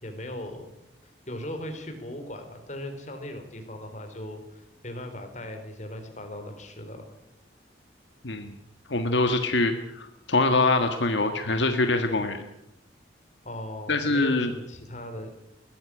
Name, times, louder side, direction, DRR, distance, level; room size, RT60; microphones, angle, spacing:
voice 1, 0.0-0.7 1.3-7.1 13.4-15.3, left 1 dB, 40° left, 6 dB, 3.9 m, -38 dB
voice 2, 8.9-12.4 13.9-14.5, left 2 dB, 70° left, 6 dB, 1.5 m, -24 dB
21.0 x 13.5 x 9.9 m, 0.86 s
head